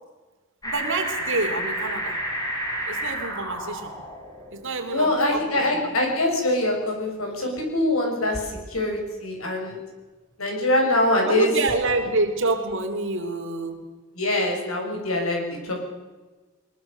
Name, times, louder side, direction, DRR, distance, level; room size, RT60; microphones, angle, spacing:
sound 1, 0.6-6.8 7.3-7.4, equal, 15° left, 5.1 m, -31 dB
voice 1, 0.6-2.2 2.9-3.9 4.5-5.6 11.2-13.8, right 2 dB, 60° right, 5 dB, 3.2 m, -27 dB
voice 2, 4.9-9.8 10.4-11.5 14.2-15.8, left 1 dB, 75° left, 1 dB, 6.6 m, -24 dB
22.0 x 21.0 x 6.8 m, 1.3 s
head